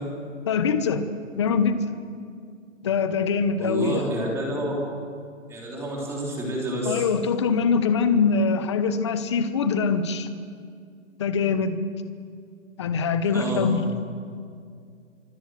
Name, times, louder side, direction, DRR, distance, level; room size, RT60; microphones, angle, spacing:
voice 1, 0.5-1.0 1.4-1.9 2.8-4.1 6.9-10.3 11.2-11.8 12.8-13.9, left 5 dB, 20° left, 10 dB, 1.0 m, -23 dB
voice 2, 3.6-4.7 5.5-7.0 13.3-13.6, right 1 dB, 5° right, -2 dB, 3.5 m, -29 dB
25.5 x 25.0 x 7.7 m, 2.3 s
hypercardioid pair, 175°, 40 cm